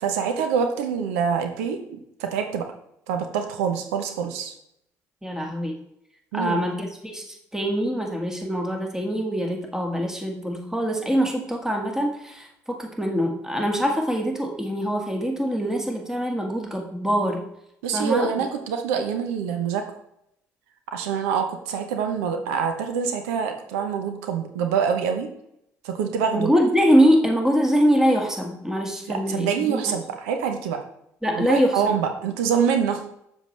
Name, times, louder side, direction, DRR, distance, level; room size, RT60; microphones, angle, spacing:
voice 1, 0.0-2.7 3.1-4.5 6.3-6.6 17.8-19.8 20.9-25.3 25.8-26.5 29.1-30.8 31.3-33.0, right 7 dB, 85° right, 6 dB, 0.8 m, -25 dB
voice 2, 5.2-5.7 6.3-17.4 17.9-18.3 26.3-29.9 31.2-32.0, equal, 5° right, 1 dB, 1.8 m, -23 dB
7.3 x 7.0 x 3.2 m, 0.76 s
hypercardioid pair, 55°, 8 cm